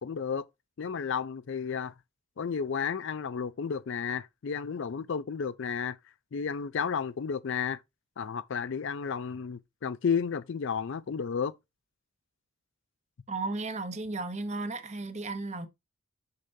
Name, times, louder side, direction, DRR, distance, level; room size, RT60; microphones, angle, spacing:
voice 1, 0.0-0.4 0.8-1.9 2.4-6.0 6.3-7.8 8.2-11.5, left 6 dB, 55° left, 0.4 m, -32 dB
voice 2, 13.3-15.7, right 3 dB, 30° right, 0.9 m, -34 dB
6.6 x 6.6 x 2.7 m
head